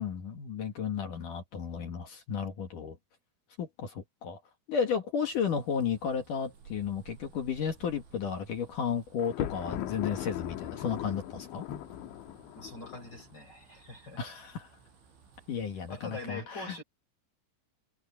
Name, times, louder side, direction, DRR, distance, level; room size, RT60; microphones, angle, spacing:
voice 1, 0.0-3.0 3.6-4.4 4.7-11.7 14.2-14.7 15.5-16.8, left 7 dB, 55° left, 2.7 m, -33 dB
sound 1, 5.3-16.3, right 5 dB, 70° right, 8.4 m, -58 dB
Thunder, 9.2-13.3, left 12 dB, 75° left, 3.3 m, -38 dB
voice 2, 12.5-14.2 15.9-16.8, left 3 dB, 25° left, 4.3 m, -43 dB
omnidirectional pair, 5.6 m